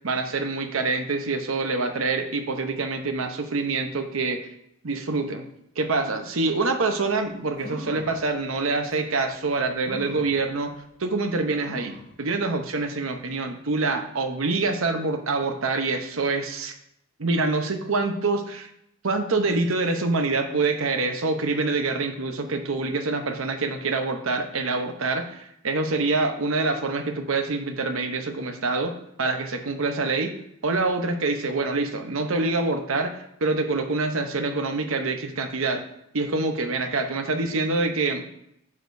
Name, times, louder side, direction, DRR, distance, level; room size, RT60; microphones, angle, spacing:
voice 1, 0.0-4.5 4.8-5.4 5.8-16.7 17.2-18.7 19.0-30.3 30.6-35.8 36.1-38.3, right 3 dB, 75° right, 6 dB, 0.9 m, -26 dB
sound 1, 7.2-7.3 7.6-8.2 8.9-9.0 9.9-10.4 11.7-12.1 12.7-12.8 13.1-13.2, left 1 dB, 55° right, 2.4 m, -40 dB
9.7 x 6.5 x 2.7 m, 0.76 s
head